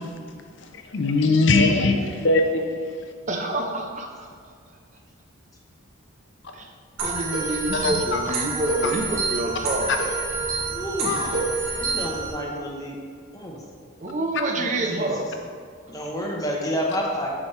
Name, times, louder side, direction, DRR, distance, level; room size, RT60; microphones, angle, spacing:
voice 1, 0.9-1.9 2.2-2.7 7.7-8.2 8.8-8.9 11.0-11.3, left 3 dB, 55° left, 4 dB, 0.5 m, -20 dB
voice 2, 3.2-4.1 6.5-6.7 7.0-10.0 14.0-15.3, right 2 dB, 35° right, 3 dB, 0.5 m, -27 dB
sound 1, 7.0-12.3, right 4 dB, 80° right, 1.7 m, -27 dB
voice 3, 10.7-11.2 11.8-13.0 13.3-13.5 14.9-15.1 15.9-17.3, equal, 15° left, -2 dB, 0.9 m, -29 dB
7.3 x 6.3 x 3.2 m, 2.2 s
head